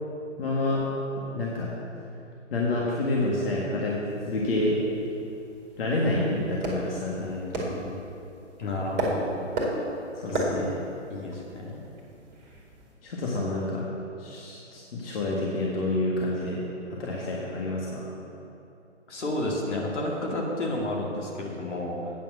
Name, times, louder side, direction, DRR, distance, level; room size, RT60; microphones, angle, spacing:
voice 1, 0.4-0.9 1.2-1.7 2.5-4.0 4.2-4.8 5.8-7.2 8.6-9.1 10.2-10.7 13.0-13.9 14.2-16.6 16.9-18.1, left 2 dB, 50° left, -4 dB, 1.7 m, -28 dB
sound 1, 4.1-12.9, right 1 dB, 20° right, 1.9 m, -34 dB
voice 2, 7.2-8.0 8.6-9.4 10.3-10.7 11.1-11.8 19.1-22.1, left 1 dB, 70° left, -2 dB, 2.4 m, -32 dB
8.8 x 6.7 x 6.3 m, 2.8 s
hypercardioid pair, 140°, 37 cm